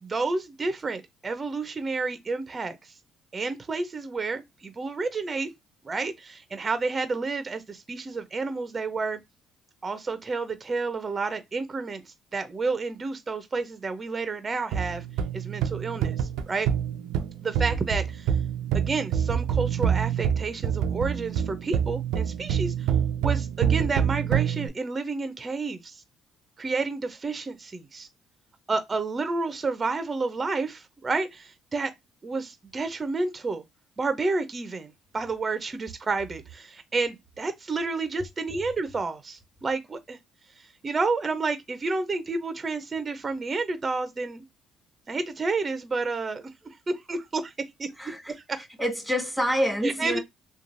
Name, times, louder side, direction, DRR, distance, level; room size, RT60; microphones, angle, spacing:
voice 1, 0.0-2.9 3.3-5.5 5.8-9.2 9.8-12.0 12.3-15.0 15.3-16.7 17.4-18.3 18.7-22.9 23.2-26.0 26.6-28.1 28.7-31.9 32.2-33.6 34.0-40.2 40.8-44.4 45.1-47.5 47.8-47.9 48.3-48.6 49.8-50.2, right 3 dB, 30° right, 0.6 m, -30 dB
sound 1, 14.7-24.7, right 8 dB, 85° right, 0.4 m, -26 dB
voice 2, 48.0-48.3 48.8-50.2, equal, ahead, 1.6 m, -27 dB
3.0 x 2.3 x 2.6 m
supercardioid pair, 80°, 0 cm